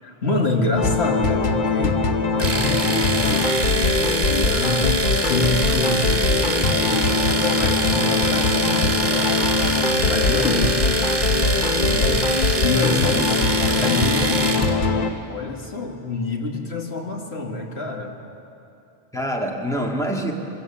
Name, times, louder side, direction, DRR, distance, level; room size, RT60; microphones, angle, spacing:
voice 1, 0.0-2.1 2.4-9.4 10.0-11.3 11.8-12.3 12.6-18.2, left 3 dB, 90° left, 2 dB, 2.1 m, -27 dB
sound 1, 0.8-15.1, left 3 dB, 50° left, 1.1 m, -21 dB
Domestic sounds home sounds, 2.4-14.7, right 3 dB, 60° right, 1.8 m, -25 dB
voice 2, 12.9-13.5 13.8-14.1 19.1-20.3, equal, 5° left, 0 dB, 1.9 m, -26 dB
22.5 x 16.5 x 7.3 m, 2.7 s
omnidirectional pair, 1.0 m